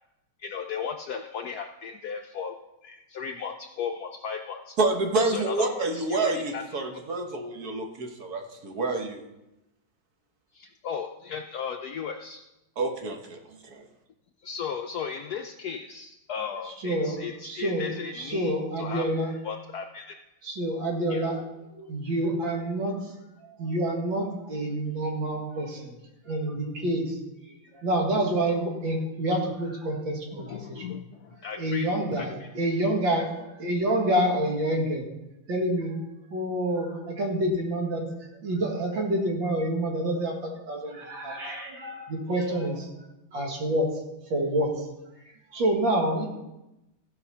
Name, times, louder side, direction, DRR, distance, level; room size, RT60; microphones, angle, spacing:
voice 1, 0.4-2.6 2.8-4.8 5.3-6.6 10.5-12.4 14.4-19.1 19.4-20.1 21.1-21.3 30.4-31.9 32.2-32.5, left 6 dB, 70° left, 5 dB, 0.9 m, -36 dB
voice 2, 4.8-9.2 12.8-13.9, right 3 dB, 55° right, 3 dB, 1.5 m, -28 dB
voice 3, 16.6-19.3 20.4-23.1 23.4-26.0 26.2-30.9 31.6-35.1 35.5-36.0 36.3-42.9 43.3-44.0 44.3-44.9 45.2-46.3, right 1 dB, 70° right, 0 dB, 2.5 m, -28 dB
15.0 x 5.1 x 5.6 m, 0.94 s
omnidirectional pair, 2.2 m